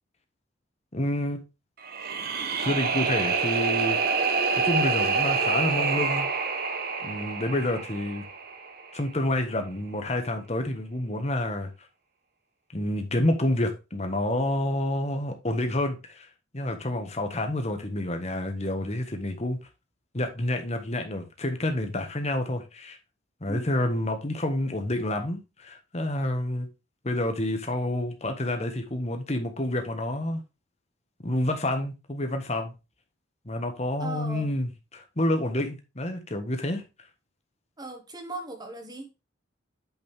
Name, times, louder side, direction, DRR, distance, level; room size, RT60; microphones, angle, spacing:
voice 1, 0.9-1.4 2.6-4.0 4.6-6.3 7.0-8.2 8.9-11.7 12.7-16.3 16.5-19.6 20.1-23.0 23.4-26.7 27.0-30.4 31.2-32.7 33.4-36.8, left 1 dB, 35° left, 1.3 m, -28 dB
sound 1, 1.8-8.9, right 5 dB, 50° right, 1.0 m, -27 dB
voice 2, 23.5-23.8 34.0-34.5 37.8-39.1, right 2 dB, 20° right, 1.5 m, -38 dB
8.3 x 5.2 x 3.5 m
head